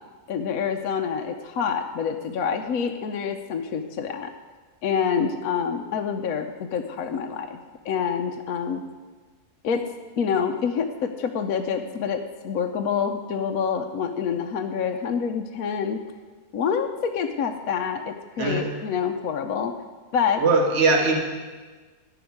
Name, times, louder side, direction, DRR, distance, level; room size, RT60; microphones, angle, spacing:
voice 1, 0.3-4.3 4.8-7.6 7.8-8.8 9.6-9.9 10.2-16.0 16.5-19.7 20.1-20.4, left 6 dB, 65° left, 4 dB, 1.2 m, -27 dB
voice 2, 20.4-21.2, right 3 dB, 40° right, 1 dB, 1.9 m, -20 dB
13.0 x 6.0 x 9.4 m, 1.4 s
omnidirectional pair, 1.7 m